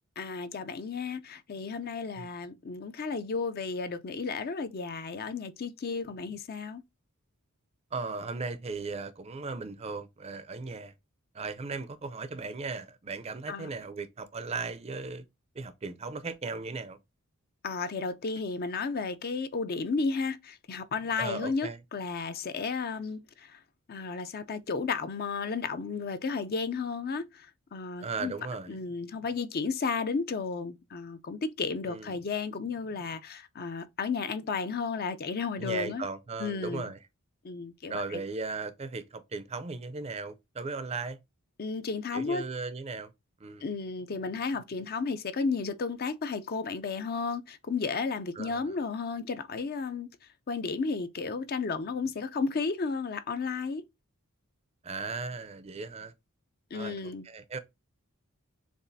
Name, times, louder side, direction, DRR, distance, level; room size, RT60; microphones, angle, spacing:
voice 1, 0.2-6.8 13.5-13.7 17.6-23.6 23.9-28.3 28.7-36.1 36.4-36.9 37.4-38.2 41.6-42.4 43.6-50.1 50.5-53.8 56.7-57.3, left 4 dB, 45° left, 0.4 m, -33 dB
voice 2, 7.9-10.9 11.3-15.2 15.5-17.0 21.2-21.8 28.0-28.8 31.9-32.2 35.6-37.0 37.9-41.2 42.1-43.1 43.4-43.6 48.4-48.6 54.8-56.1 56.7-57.6, right 4 dB, 30° right, 0.5 m, -37 dB
6.9 x 2.5 x 2.6 m
head